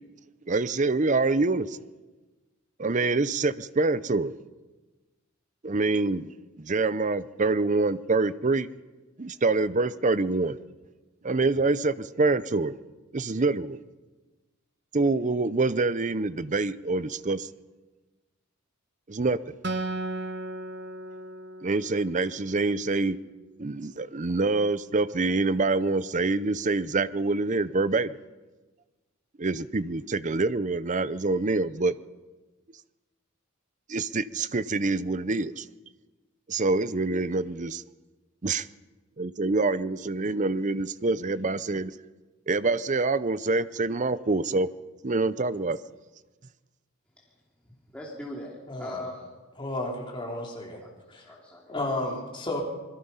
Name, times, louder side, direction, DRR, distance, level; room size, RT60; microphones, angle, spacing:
voice 1, 0.5-1.8 2.8-4.3 5.6-6.3 6.6-8.7 9.2-10.6 11.2-12.7 13.1-13.8 14.9-17.5 19.1-19.4 21.6-23.2 23.6-28.2 29.4-32.0 33.9-35.7 36.5-37.8 38.4-38.7 39.2-41.9 42.5-44.7 45.0-45.8, right 3 dB, 35° right, 15 dB, 0.6 m, -26 dB
Acoustic guitar, 19.6-23.1, right 2 dB, 50° right, 1.4 m, -36 dB
voice 2, 47.9-49.3 50.8-51.6, left 1 dB, 5° left, -4 dB, 3.0 m, -40 dB
voice 3, 48.7-49.0 49.6-50.8 51.1-51.3 51.7-52.6, left 2 dB, 20° left, -1 dB, 3.6 m, -32 dB
26.0 x 21.0 x 5.7 m, 1.2 s
head